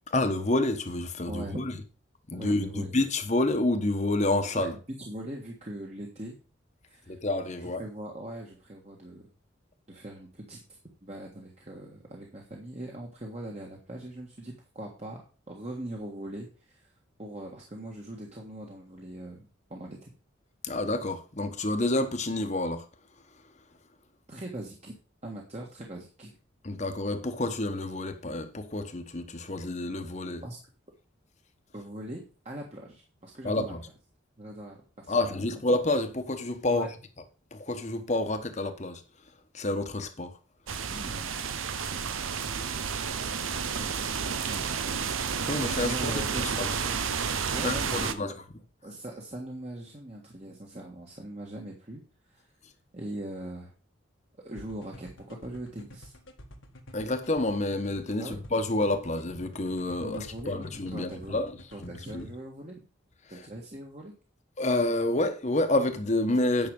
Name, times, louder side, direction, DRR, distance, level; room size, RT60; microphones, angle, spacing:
voice 1, 0.1-1.7 2.3-4.7 7.1-7.8 20.6-22.8 26.6-30.4 33.4-33.8 35.1-36.9 37.5-39.0 39.5-40.3 45.5-46.1 46.6-46.7 47.6-48.3 56.9-61.5 61.8-62.3 64.6-66.7, left 2 dB, 35° left, 1.2 m, -28 dB
voice 2, 1.3-1.6 2.3-2.9 4.5-4.7 5.0-6.4 6.9-7.2 7.6-9.3 9.9-16.9 17.2-20.1 24.3-24.9 25.2-26.4 30.4-30.6 31.7-33.7 34.4-35.3 36.7-36.9 40.9-42.2 43.8-45.1 45.8-46.8 47.5-48.3 48.8-52.0 52.3-52.5 52.9-53.7 54.4-56.1 58.2-58.4 60.0-61.4 61.7-62.8 63.3-64.1, right 1 dB, 35° right, 1.6 m, -41 dB
sound 1, 40.7-48.1, right 6 dB, 90° right, 0.8 m, -31 dB
sound 2, 54.6-62.3, left 1 dB, 75° left, 1.6 m, -49 dB
9.6 x 6.0 x 5.3 m
head